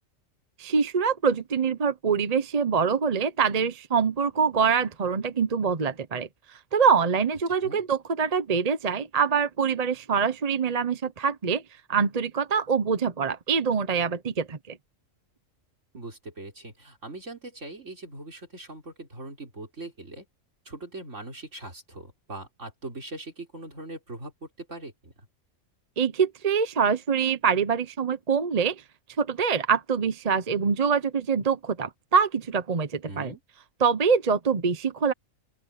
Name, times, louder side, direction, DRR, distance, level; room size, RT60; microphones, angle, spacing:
voice 1, 0.6-11.6 11.9-14.8 26.0-28.8 29.2-33.3 33.8-35.1, right 6 dB, 35° right, 0.8 m, -25 dB
voice 2, 15.9-20.2 20.6-25.3 33.0-33.4, right 2 dB, 65° right, 4.8 m, -41 dB
open air
omnidirectional pair, 1.3 m